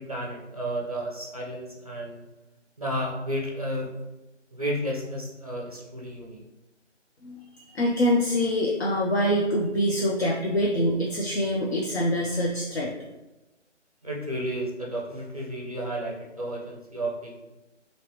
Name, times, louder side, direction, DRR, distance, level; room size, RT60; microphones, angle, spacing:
voice 1, 0.0-2.2 2.8-4.1 4.5-6.4 14.0-17.4, equal, 30° right, -2 dB, 0.5 m, -32 dB
voice 2, 7.2-12.9, equal, 60° left, -3 dB, 0.6 m, -25 dB
2.9 x 2.8 x 3.0 m, 1.0 s
figure-of-eight pair, 170°, 36 cm